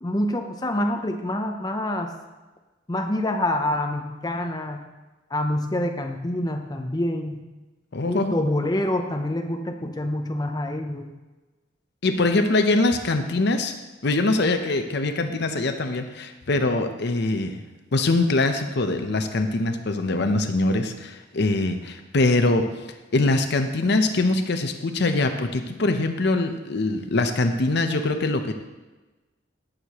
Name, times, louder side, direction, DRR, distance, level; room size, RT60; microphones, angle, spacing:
voice 1, 0.0-2.1 2.9-4.8 5.3-7.4 8.1-11.1, left 1 dB, 20° left, 3 dB, 0.7 m, -26 dB
voice 2, 7.9-8.3 12.0-13.7 14.0-17.6 17.9-22.7 23.1-28.5, left 2 dB, 60° left, 7 dB, 0.7 m, -23 dB
16.0 x 6.5 x 3.0 m, 1.2 s
head